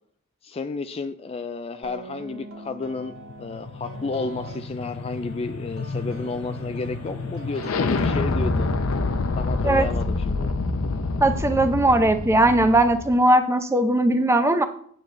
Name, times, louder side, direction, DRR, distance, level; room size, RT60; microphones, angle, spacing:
voice 1, 0.4-8.7 9.4-10.5, left 3 dB, 25° left, 10 dB, 0.3 m, -32 dB
sound 1, 1.8-8.9, right 2 dB, 65° right, 1.6 m, -43 dB
sound 2, 3.0-13.2, left 3 dB, 65° left, 0.7 m, -28 dB
voice 2, 11.2-14.6, right 1 dB, 10° right, 8 dB, 0.6 m, -19 dB
9.2 x 7.7 x 3.2 m, 0.62 s
head